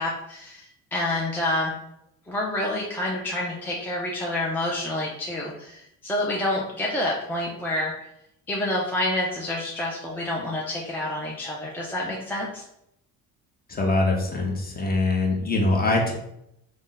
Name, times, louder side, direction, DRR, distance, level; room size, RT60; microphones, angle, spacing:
voice 1, 0.0-1.7 2.3-7.9 8.5-12.6, left 1 dB, 5° left, -4 dB, 0.4 m, -28 dB
voice 2, 13.7-16.1, left 2 dB, 25° left, 0 dB, 0.7 m, -23 dB
2.5 x 2.1 x 3.8 m, 0.79 s
cardioid pair, 105°, 37 cm